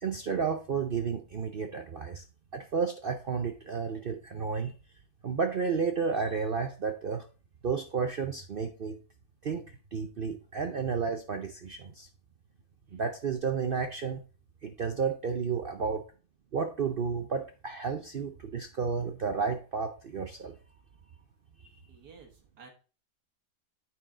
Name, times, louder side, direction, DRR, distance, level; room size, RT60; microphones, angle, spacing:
voice 1, 0.0-2.2 2.5-4.7 5.2-7.3 7.6-9.0 9.4-12.1 12.9-14.2 14.6-16.0 16.5-20.5, right 5 dB, 60° right, 6 dB, 0.5 m, -32 dB
voice 2, 21.9-22.7, right 5 dB, 75° right, 2 dB, 2.0 m, -53 dB
9.3 x 4.7 x 3.8 m, 0.36 s
omnidirectional pair, 1.7 m